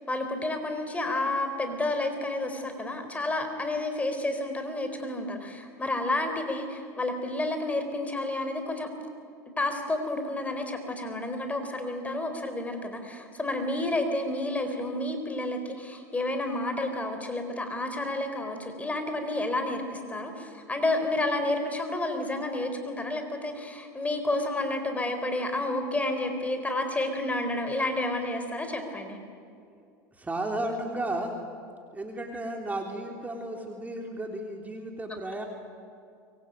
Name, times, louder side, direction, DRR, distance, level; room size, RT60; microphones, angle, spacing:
voice 1, 0.1-8.9 9.6-29.2, left 2 dB, 15° left, 6 dB, 4.3 m, -30 dB
voice 2, 30.1-31.4 31.9-35.4, right 1 dB, 15° right, 2 dB, 3.5 m, -33 dB
24.5 x 23.0 x 9.1 m, 2.4 s
supercardioid pair, 105°, 10 cm